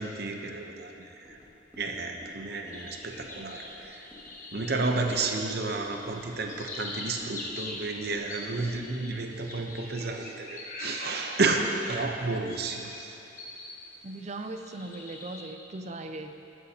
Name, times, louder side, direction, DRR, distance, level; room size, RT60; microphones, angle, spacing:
voice 1, 0.0-1.4 1.8-4.0 4.5-13.1, right 3 dB, 60° right, 3 dB, 0.8 m, -31 dB
sound 1, 1.2-8.8, left 2 dB, 10° right, 2.0 m, -51 dB
sound 2, 2.7-13.8 14.2-15.4, left 2 dB, 45° left, 1.4 m, -43 dB
voice 2, 14.0-16.3, right 2 dB, 40° right, 7 dB, 0.5 m, -39 dB
15.0 x 9.5 x 2.9 m, 2.9 s
head